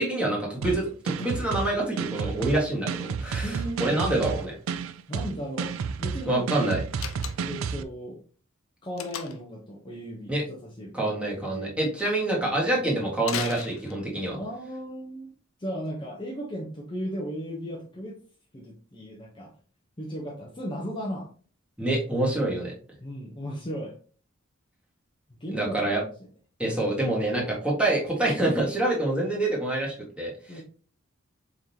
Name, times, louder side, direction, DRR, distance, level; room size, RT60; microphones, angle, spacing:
voice 1, 0.0-4.6 6.3-6.8 10.3-10.4 10.9-14.4 21.8-22.7 25.5-26.0 26.6-30.6, right 2 dB, 5° right, -3 dB, 1.6 m, -26 dB
sound 1, 0.6-7.8, right 5 dB, 75° right, 0.4 m, -31 dB
voice 2, 3.4-3.9 5.1-5.7 6.0-6.5 7.4-8.2 8.8-11.0 11.3-11.9 12.4-12.9 14.3-15.3 15.6-18.2 18.5-19.5 20.0-21.3 23.0-24.0 25.4-26.3 30.5-30.6, equal, 25° left, -3 dB, 0.8 m, -36 dB
Slam, 6.9-7.7 9.0-9.6 13.2-14.3, left 8 dB, 80° left, 0.6 m, -36 dB
4.8 x 3.7 x 2.8 m, 0.41 s
head